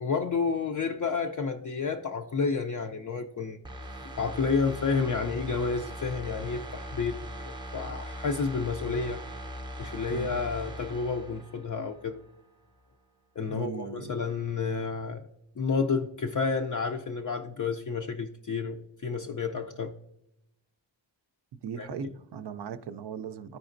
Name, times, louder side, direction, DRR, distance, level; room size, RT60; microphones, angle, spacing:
voice 1, 0.0-3.6 4.2-9.2 9.8-12.2 13.4-15.3 15.6-19.9 21.8-22.1, left 5 dB, 45° left, 0.4 m, -30 dB
sound 1, 3.6-12.3 12.7-12.8, equal, 10° right, 0.6 m, -40 dB
voice 2, 10.1-10.4 13.5-14.2 21.6-23.6, right 7 dB, 60° right, 0.5 m, -38 dB
13.0 x 5.0 x 2.5 m
wide cardioid pair, 155°, 46 cm